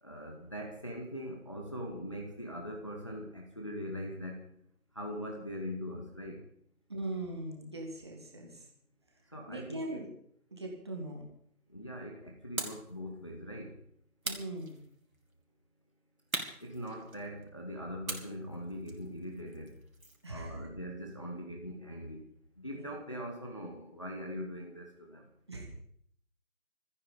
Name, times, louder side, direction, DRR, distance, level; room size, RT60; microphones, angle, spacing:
voice 1, 0.0-4.5 4.9-6.5 9.3-10.0 11.7-13.8 16.6-19.8 20.3-22.2 22.6-25.2, equal, 20° left, 1 dB, 1.2 m, -41 dB
voice 2, 6.9-8.7 9.5-10.1 10.5-11.2 14.2-14.8 20.2-20.6 22.7-23.0 25.5-25.7, right 1 dB, 15° right, 1 dB, 1.9 m, -40 dB
sound 1, 12.6-12.9 14.2-15.2 16.3-17.4 18.1-20.3, right 2 dB, 65° right, 3.5 m, -41 dB
26.5 x 9.6 x 5.2 m, 0.67 s
figure-of-eight pair, 165°, 45 cm